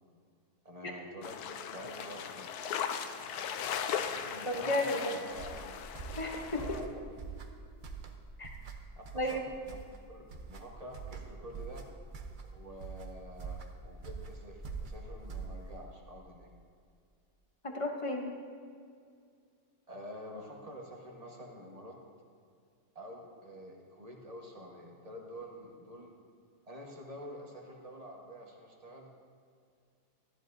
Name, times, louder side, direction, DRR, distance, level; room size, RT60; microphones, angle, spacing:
voice 1, 0.6-2.5 4.1-5.8 6.5-7.2 8.9-9.0 9.3-9.8 10.1-11.9 12.4-16.5 19.9-22.0 22.9-26.1 26.6-29.2, equal, 25° right, -1 dB, 1.2 m, -48 dB
sound 1, 1.2-6.8, left 8 dB, 75° left, 1.1 m, -38 dB
voice 2, 4.4-5.2 6.2-6.8 8.4-8.6 9.1-9.4 17.6-18.3, left 1 dB, 30° left, 2 dB, 0.6 m, -33 dB
sound 2, 5.3-15.9, right 5 dB, 50° right, 0.6 m, -44 dB
14.0 x 11.0 x 2.6 m, 2.3 s
omnidirectional pair, 1.7 m